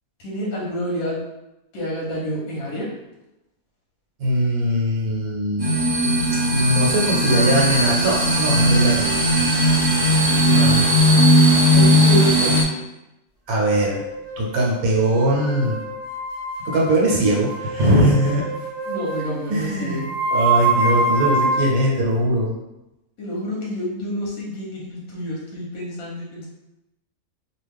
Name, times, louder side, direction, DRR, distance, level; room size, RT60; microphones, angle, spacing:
voice 1, 0.2-1.2 1.7-2.9 10.3-11.1 11.7-12.8 18.9-20.1 23.2-26.5, equal, 85° left, -4 dB, 1.4 m, -28 dB
voice 2, 4.2-5.7 6.5-9.1 10.5-10.9 13.5-14.0 14.4-15.8 16.6-18.4 19.5-20.0 20.3-22.5, right 1 dB, 75° right, -3 dB, 1.3 m, -20 dB
sound 1, 5.6-12.6, equal, 30° right, 0.4 m, -17 dB
sound 2, 13.6-21.8, right 3 dB, 40° left, 1.3 m, -26 dB
3.0 x 2.4 x 3.4 m, 0.94 s
omnidirectional pair, 1.5 m